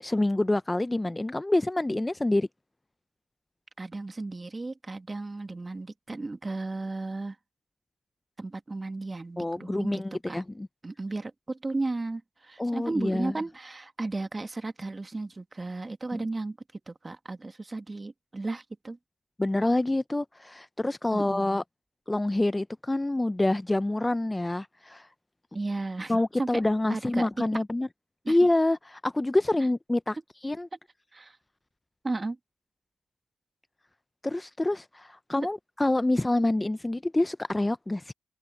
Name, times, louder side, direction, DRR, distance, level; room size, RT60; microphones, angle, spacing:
voice 1, 0.0-2.5 9.4-10.7 12.6-13.3 16.1-16.2 19.4-21.6 22.1-25.1 26.1-27.9 28.3-30.2 30.4-30.7 34.2-38.1, left 2 dB, 15° left, 0.5 m, -27 dB
voice 2, 3.8-7.4 8.4-10.0 10.3-10.4 10.8-16.6 16.9-19.0 21.1-21.5 25.5-26.1 26.4-26.5 26.9-27.3 28.3-28.4 31.1-31.3 32.0-32.4, right 2 dB, 25° right, 1.7 m, -34 dB
open air
cardioid pair, 65°, 0 cm